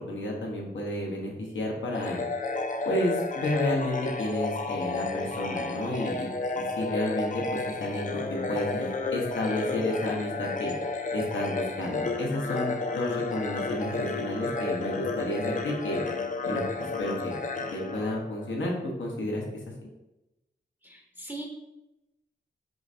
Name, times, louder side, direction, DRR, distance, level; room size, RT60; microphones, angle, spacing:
voice 1, 0.0-2.2 2.8-6.3 6.5-10.7 11.1-16.0 16.4-16.6 17.0-17.3 17.7-19.4, left 1 dB, 85° left, -1 dB, 1.0 m, -31 dB
sound 1, 1.9-18.7, left 3 dB, 45° left, 0.4 m, -32 dB
voice 2, 20.8-21.4, right 1 dB, 10° right, -1 dB, 0.6 m, -40 dB
4.9 x 3.2 x 2.5 m, 0.96 s
wide cardioid pair, 80°, 19 cm